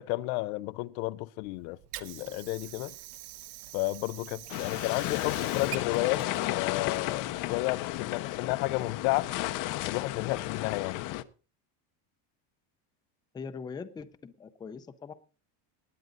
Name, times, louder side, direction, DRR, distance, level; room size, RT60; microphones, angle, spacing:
voice 1, 0.0-2.9 3.7-6.2 6.5-9.3 9.8-11.0, left 20 dB, 80° left, 0.7 m, -32 dB
Water / Sink (filling or washing), 1.4-7.4, right 15 dB, 50° right, 1.0 m, -46 dB
sound 1, 4.5-11.2, left 16 dB, 45° left, 0.7 m, -33 dB
voice 2, 13.3-15.1, left 5 dB, 10° left, 0.5 m, -41 dB
19.0 x 9.3 x 3.9 m
cardioid pair, 165°, 44 cm